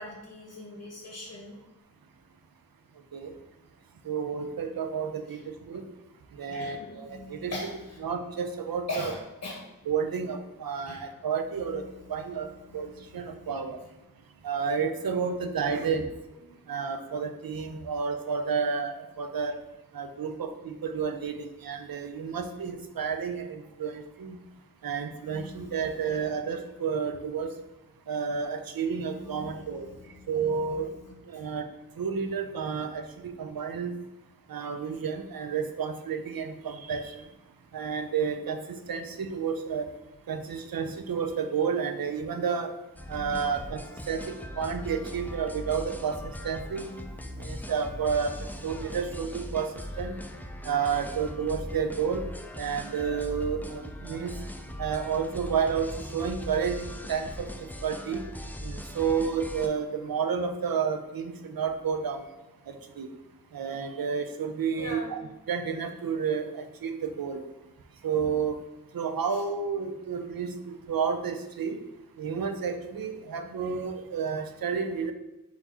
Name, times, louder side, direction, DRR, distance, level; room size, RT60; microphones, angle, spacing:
voice 1, 0.0-1.5 5.3-5.4 6.5-8.0 8.9-9.6 10.9-11.0 11.6-13.6 20.1-20.3 25.3-26.3 29.1-31.5 43.1-43.4 46.7-47.7 64.8-65.2 69.3-69.4, left 2 dB, 60° left, -1 dB, 0.9 m, -42 dB
voice 2, 4.1-5.8 6.4-7.5 8.0-9.0 9.9-11.8 12.1-13.8 14.4-16.1 16.7-19.6 19.9-24.4 24.8-27.5 28.1-29.9 30.3-30.9 31.3-31.7 32.0-33.9 34.5-37.2 37.7-39.9 40.3-42.7 43.1-46.9 47.4-48.4 48.6-49.7 50.0-50.2 50.6-52.2 52.6-54.3 54.8-58.2 58.6-62.2 62.7-63.1 63.5-65.2 65.5-67.4 68.0-68.6 68.9-71.8 72.2-75.1, right 6 dB, 85° right, 7 dB, 0.5 m, -31 dB
sound 1, 42.9-59.7, equal, 5° left, 0.3 m, -40 dB
4.2 x 2.8 x 4.2 m, 1.0 s
wide cardioid pair, 70°, 34 cm